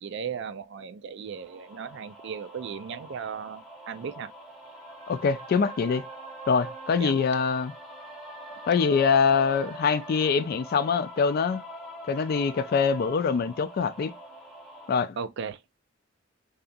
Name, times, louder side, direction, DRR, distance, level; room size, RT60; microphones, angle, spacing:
voice 1, 0.0-4.3 7.0-7.1 15.2-15.6, right 6 dB, 60° right, 0.4 m, -36 dB
sound 1, 1.3-14.9, right 1 dB, ahead, 0.8 m, -43 dB
voice 2, 5.1-6.1 6.5-7.7 8.7-11.6 12.1-14.1 14.9-15.2, left 5 dB, 50° left, 0.3 m, -24 dB
2.7 x 2.3 x 2.5 m
head